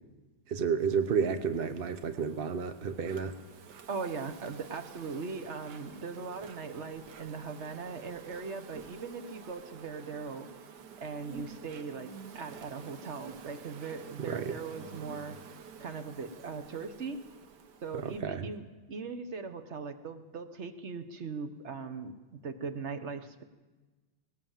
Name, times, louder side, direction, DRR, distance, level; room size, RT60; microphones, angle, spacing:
voice 1, 0.5-3.3 14.2-14.5 18.0-18.5, right 6 dB, 70° right, 9 dB, 0.5 m, -31 dB
Insect, 0.8-18.2, right 6 dB, 55° right, 1.6 m, -50 dB
voice 2, 3.9-10.5 11.0-15.4 15.8-17.2 17.8-22.2 22.4-23.4, right 4 dB, 40° right, 9 dB, 1.1 m, -39 dB
19.5 x 18.5 x 7.4 m, 1.2 s
omnidirectional pair, 2.4 m